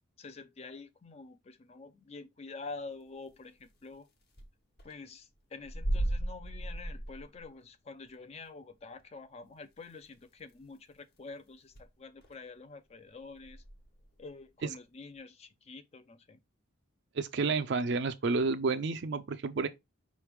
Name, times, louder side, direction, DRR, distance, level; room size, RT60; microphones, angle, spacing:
voice 1, 0.2-4.1 4.8-13.6 14.2-16.4, left 3 dB, 30° left, 0.4 m, -47 dB
sound 1, 3.6-3.7 4.0-4.1 4.3-4.5 4.8-5.0 5.6-7.5 8.1-8.2 9.0-9.1 10.0-10.1 10.4-10.5 10.9-11.2 11.7-11.9 12.2-12.4 13.3-14.3, right 1 dB, 50° left, 1.1 m, -35 dB
voice 2, 17.1-19.7, right 4 dB, 55° right, 0.4 m, -30 dB
5.0 x 3.2 x 3.3 m
head